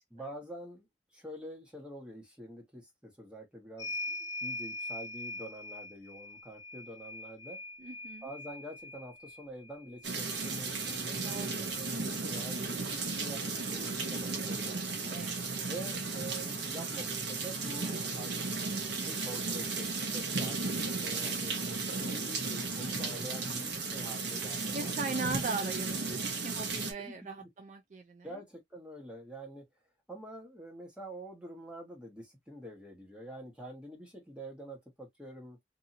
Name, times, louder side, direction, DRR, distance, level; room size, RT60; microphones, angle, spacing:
voice 1, 0.1-0.9 1.1-7.6 8.2-15.2 15.7-18.3 18.6-20.6 21.0-21.5 22.0-24.9 27.0-27.1 28.2-29.7 30.1-35.6, right 1 dB, 5° right, 1.2 m, -46 dB
sound 1, 3.8-11.9 13.2-13.3 13.6-14.6, left 2 dB, 15° left, 0.9 m, -43 dB
voice 2, 7.8-8.3 11.2-11.8 15.1-15.5 24.7-28.4, right 3 dB, 40° right, 0.4 m, -39 dB
sound 2, 10.0-26.9, right 4 dB, 65° right, 0.8 m, -35 dB
2.7 x 2.7 x 2.6 m
head